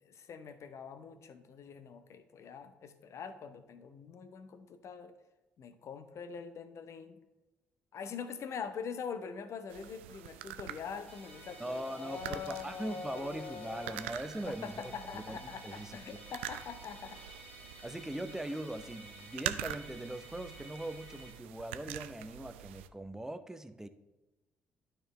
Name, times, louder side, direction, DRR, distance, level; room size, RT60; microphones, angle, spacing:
voice 1, 0.0-5.1 5.6-7.2 7.9-14.1 14.4-17.2, left 6 dB, 50° left, 10 dB, 0.8 m, -44 dB
sound 1, 9.7-22.9, right 12 dB, 75° right, 0.3 m, -45 dB
Musical instrument, 11.1-21.3, equal, 85° left, 1.0 m, -54 dB
voice 2, 11.6-16.3 17.8-23.9, right 1 dB, 10° right, 10 dB, 0.7 m, -41 dB
12.0 x 4.5 x 3.2 m, 1.1 s
figure-of-eight pair, 45°, 6 cm